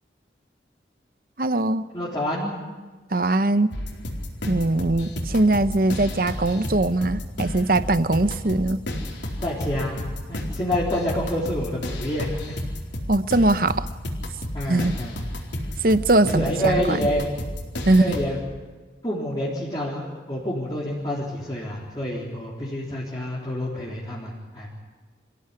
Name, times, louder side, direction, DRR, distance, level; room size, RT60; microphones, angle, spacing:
voice 1, 1.4-1.9 3.1-3.7 4.5-8.8 13.1-13.9 14.7-15.0 15.8-17.0 17.9-18.2, right 2 dB, 50° right, 13 dB, 0.9 m, -21 dB
voice 2, 1.9-2.5 9.4-10.0 10.3-12.4 14.5-15.2 16.3-17.2 17.9-18.4 19.0-24.7, equal, 25° left, -6 dB, 3.9 m, -28 dB
sound 1, 3.7-18.2, left 1 dB, 85° left, 4.3 m, -32 dB
26.0 x 16.5 x 9.9 m, 1.3 s
head